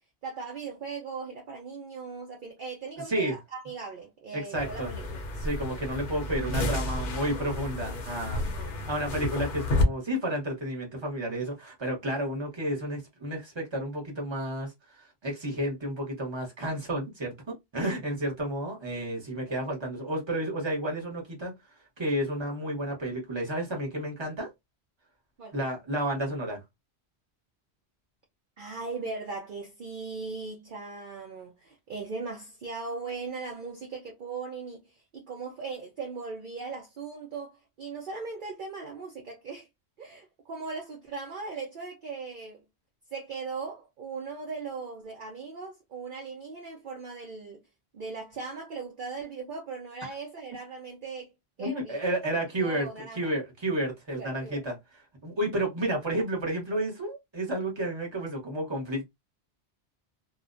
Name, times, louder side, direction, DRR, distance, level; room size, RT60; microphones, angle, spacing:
voice 1, 0.2-5.3 8.4-8.9 19.5-19.6 25.4-25.6 28.6-39.7 40.0-42.6 43.1-47.6 47.9-51.3 51.6-52.1 52.6-53.3 54.1-54.6, right 4 dB, 55° right, 0.7 m, -39 dB
voice 2, 4.3-4.9 5.4-8.4 8.9-14.7 15.0-21.5 22.0-24.5 25.5-26.6 51.6-54.8 55.2-59.0, right 1 dB, 25° right, 1.0 m, -31 dB
sound 1, 4.5-9.8, left 2 dB, 60° left, 0.7 m, -31 dB
2.4 x 2.1 x 2.4 m
omnidirectional pair, 1.1 m